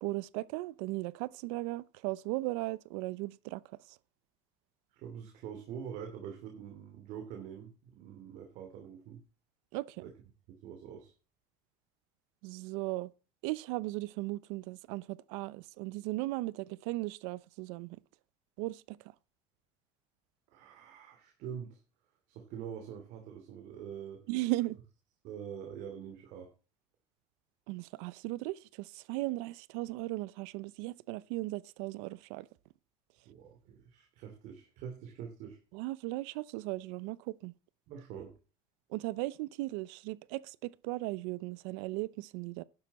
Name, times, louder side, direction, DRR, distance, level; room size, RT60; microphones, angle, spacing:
voice 1, 0.0-3.6 9.7-10.0 12.4-13.1 13.4-18.0 18.6-19.0 24.3-24.8 27.7-32.5 35.7-37.5 38.9-42.6, right 20 dB, 85° right, 0.7 m, -37 dB
voice 2, 4.9-9.2 10.0-10.1 10.5-11.1 20.5-21.8 22.3-24.2 25.2-26.5 33.2-35.6 37.9-38.3, right 8 dB, 55° right, 2.9 m, -45 dB
11.5 x 9.8 x 4.2 m
cardioid pair, 170°, 15 cm